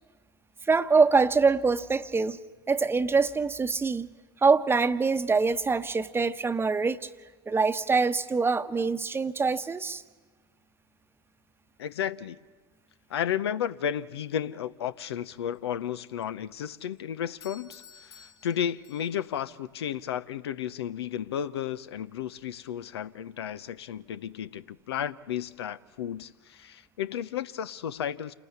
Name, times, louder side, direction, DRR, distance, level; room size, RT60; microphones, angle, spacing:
voice 1, 0.7-2.4 2.7-4.1 4.4-7.1 7.5-10.0, right 4 dB, 15° right, 1.0 m, -24 dB
voice 2, 11.8-12.4 13.1-28.3, left 9 dB, 80° left, 0.8 m, -33 dB
Doorbell, 17.4-19.4, left 6 dB, 60° left, 3.6 m, -53 dB
28.0 x 19.5 x 9.4 m
hypercardioid pair, 85°, 13 cm